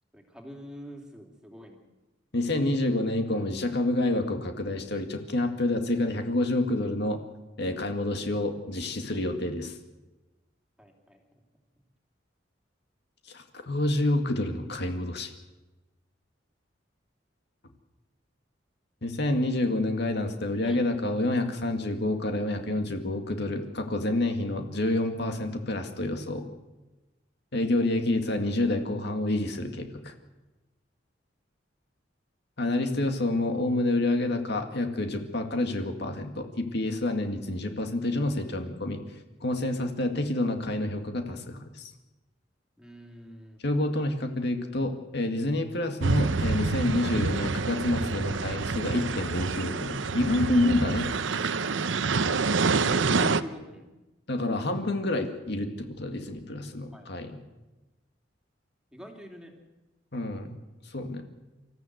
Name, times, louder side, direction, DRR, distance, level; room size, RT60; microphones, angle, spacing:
voice 1, 0.1-1.8 10.8-11.4 20.6-20.8 42.8-43.6 52.7-53.9 56.9-57.1 58.9-59.5, equal, 5° right, 2 dB, 3.0 m, -45 dB
voice 2, 2.3-7.2 7.6-9.8 13.3-15.3 19.0-26.5 27.5-30.1 32.6-39.0 39.4-41.9 43.6-51.1 54.3-57.4 60.1-60.6 60.9-61.3, left 1 dB, 60° left, 5 dB, 2.1 m, -28 dB
sound 1, 46.0-53.4, right 4 dB, 75° right, 0.8 m, -27 dB
26.5 x 14.0 x 8.0 m, 1.1 s
head